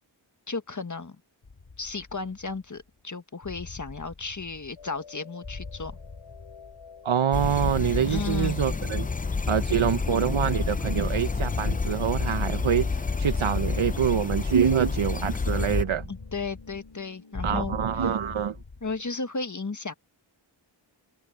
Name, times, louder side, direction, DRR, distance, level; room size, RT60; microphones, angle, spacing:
voice 1, 0.5-1.2 1.8-6.0 8.1-8.6 16.1-17.8 18.8-19.9, left 4 dB, 40° left, 1.6 m, -34 dB
sound 1, 1.4-2.8 3.4-5.0 5.4-7.1 7.4-9.0 9.4-11.0 11.4-13.0 13.3-14.9 15.3-17.0 17.3-19.0, left 4 dB, 65° left, 7.5 m, -40 dB
sound 2, 4.8-17.8, left 6 dB, 85° left, 3.7 m, -51 dB
voice 2, 7.0-9.1 9.5-16.1 17.4-18.6, right 8 dB, 85° right, 0.9 m, -26 dB
sound 3, 7.3-15.8, left 4 dB, 20° left, 0.4 m, -29 dB
wide cardioid pair, 55°, 47 cm